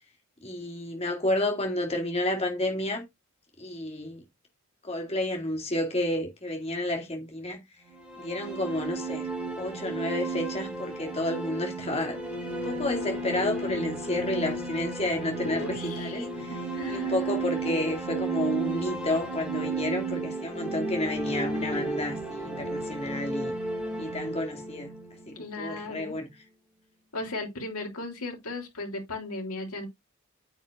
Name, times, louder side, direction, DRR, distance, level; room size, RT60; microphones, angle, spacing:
voice 1, 0.4-3.0 3.6-4.2 4.8-7.6 8.2-9.3 9.6-12.2 12.5-16.5 16.9-23.5 24.0-24.9 25.3-26.3, left 1 dB, 30° left, 2.5 m, -31 dB
sound 1, 7.9-25.9, right 2 dB, 5° right, 4.1 m, -33 dB
voice 2, 15.4-17.4 25.3-26.2 27.1-29.9, left 2 dB, 90° left, 3.3 m, -37 dB
9.1 x 8.1 x 2.6 m
head